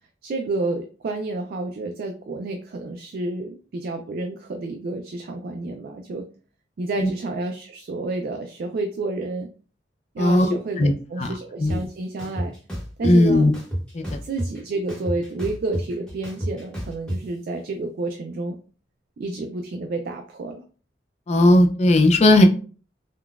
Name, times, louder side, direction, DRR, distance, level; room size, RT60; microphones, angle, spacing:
voice 1, 0.2-6.3 6.8-9.5 10.1-12.5 13.0-13.5 14.0-18.5 19.2-20.6, right 2 dB, 55° right, 4 dB, 0.3 m, -30 dB
voice 2, 10.2-10.5 10.8-10.9 11.2-11.3 11.6-11.8 13.0-13.5 13.9-14.0 21.3-22.4, left 1 dB, 35° left, 6 dB, 0.4 m, -16 dB
sound 1, 11.7-11.8 12.2-13.1 13.5-14.6 14.9-17.2, equal, 5° left, 0.9 m, -29 dB
3.7 x 2.2 x 2.3 m, 0.39 s
head